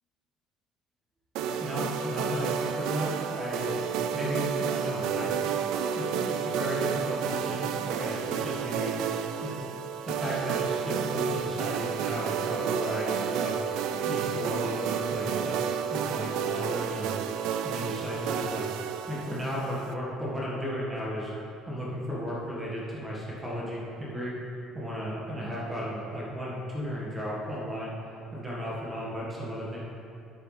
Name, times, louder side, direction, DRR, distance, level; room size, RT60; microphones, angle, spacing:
sound 1, 1.3-19.9, right 7 dB, 80° right, 0.4 m, -31 dB
voice 1, 1.6-3.7 4.1-5.3 5.9-8.9 9.4-9.8 10.0-13.5 14.1-15.6 15.9-17.2 17.6-18.7 19.1-21.3 21.7-24.3 24.7-27.9 28.3-29.8, equal, 10° right, -6 dB, 1.6 m, -34 dB
9.5 x 7.7 x 3.3 m, 2.7 s
cardioid pair, 160°, 0 cm